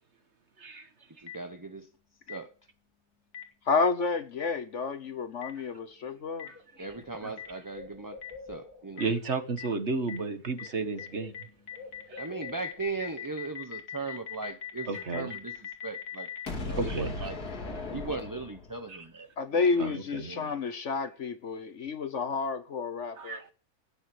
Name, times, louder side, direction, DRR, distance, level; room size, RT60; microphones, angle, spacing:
voice 1, 0.6-0.9 6.5-6.9 7.2-7.3 9.0-11.3 12.1-12.2 14.9-15.3 16.8-17.3 18.9-19.0 19.8-20.3 23.2-23.5, right 4 dB, 45° right, 1.7 m, -33 dB
voice 2, 1.2-1.9 2.3-2.5 6.8-8.2 8.5-9.1 12.1-17.4 17.9-19.8 20.3-20.5, right 3 dB, 15° right, 0.7 m, -38 dB
Boom, 1.3-1.4 2.3-2.4 3.3-3.4 4.4-4.5 5.4-5.5 6.4-6.5 7.4-7.5 8.2-8.3 9.0-9.1 9.6-9.7 10.1-10.2 10.6-10.7 11.0-11.1 11.3-18.9, left 5 dB, 75° left, 3.0 m, -38 dB
voice 3, 3.7-6.5 19.4-23.4, left 4 dB, 55° left, 1.2 m, -30 dB
Bird, 6.1-6.2 6.5-9.0 10.1-10.3 10.6-13.0, left 4 dB, 15° left, 2.5 m, -49 dB
14.5 x 9.6 x 7.7 m
omnidirectional pair, 1.7 m